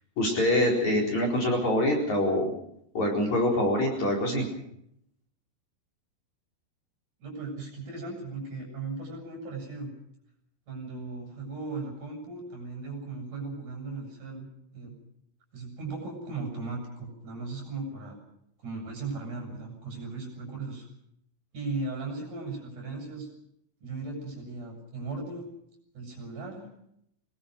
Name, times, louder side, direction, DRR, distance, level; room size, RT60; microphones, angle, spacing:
voice 1, 0.2-2.5 2.9-4.5, left 1 dB, 40° left, -1 dB, 5.5 m, -25 dB
voice 2, 7.2-9.9 10.7-14.5 14.7-15.0 15.5-18.2 18.6-20.9 21.5-23.3 23.8-25.5 25.9-26.7, right 3 dB, 45° right, 1 dB, 8.7 m, -37 dB
25.0 x 20.0 x 6.3 m, 0.75 s
omnidirectional pair, 5.1 m